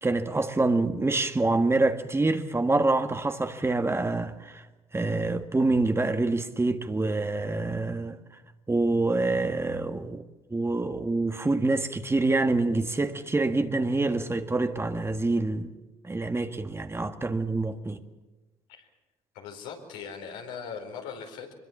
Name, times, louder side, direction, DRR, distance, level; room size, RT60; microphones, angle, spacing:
voice 1, 0.0-4.7 4.9-8.2 8.7-10.2 10.5-15.7 16.0-18.0, right 2 dB, 20° right, 1.8 m, -26 dB
voice 2, 19.3-21.5, left 6 dB, 80° left, 4.6 m, -40 dB
24.5 x 22.0 x 7.3 m
hypercardioid pair, 60°, 13 cm